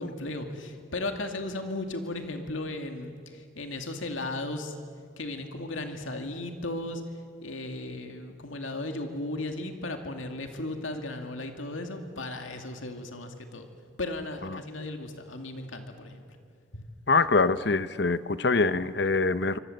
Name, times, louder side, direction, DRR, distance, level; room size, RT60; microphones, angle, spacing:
voice 1, 0.0-4.7 5.2-7.0 7.4-13.7 14.0-16.2 16.7-16.8, left 2 dB, 85° left, 5 dB, 2.4 m, -35 dB
voice 2, 17.1-19.6, left 3 dB, 55° left, 14 dB, 0.8 m, -24 dB
27.5 x 25.5 x 7.8 m, 2.2 s
head